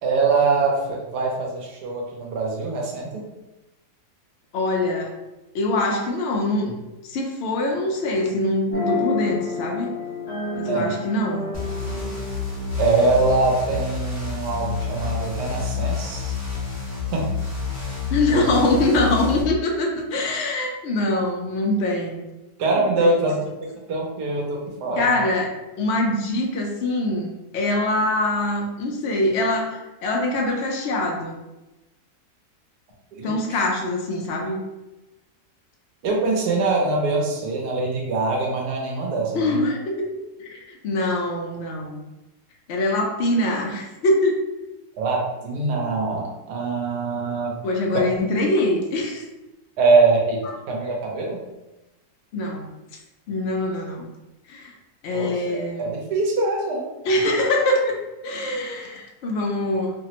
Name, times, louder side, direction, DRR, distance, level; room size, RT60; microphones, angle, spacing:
voice 1, 0.0-3.2 10.7-10.9 12.8-16.4 17.1-17.3 18.3-18.5 22.6-25.1 33.1-33.6 36.0-39.5 45.0-47.6 49.8-50.4 50.7-51.4 55.1-56.9, right 3 dB, 85° right, -1 dB, 1.2 m, -23 dB
voice 2, 4.5-5.1 5.5-6.7 7.0-9.9 10.5-11.5 18.1-22.2 22.7-23.3 25.0-25.5 25.8-31.4 33.2-34.6 39.3-42.0 42.7-44.4 47.6-49.2 52.3-52.7 53.3-54.1 54.5-54.7 55.0-55.9 57.0-59.9, left 1 dB, 75° left, 0 dB, 0.6 m, -24 dB
sound 1, 8.7-14.2, left 4 dB, 55° left, 1.0 m, -31 dB
sound 2, 11.5-19.4, left 5 dB, 15° left, 0.8 m, -29 dB
3.2 x 2.0 x 2.8 m, 1.0 s
omnidirectional pair, 1.7 m